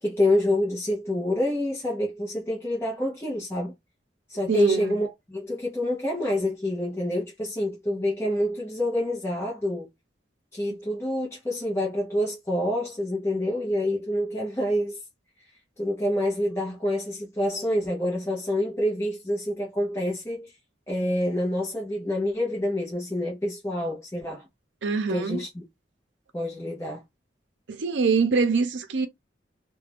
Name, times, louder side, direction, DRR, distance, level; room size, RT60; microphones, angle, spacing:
voice 1, 0.0-3.7 4.3-9.9 10.5-15.0 15.8-20.5 20.9-24.5 25.1-25.6 26.3-27.0, left 1 dB, 15° left, 0.7 m, -27 dB
voice 2, 4.5-5.0 24.8-25.4 27.7-29.1, right 4 dB, 85° right, 0.5 m, -24 dB
2.4 x 2.2 x 3.3 m
head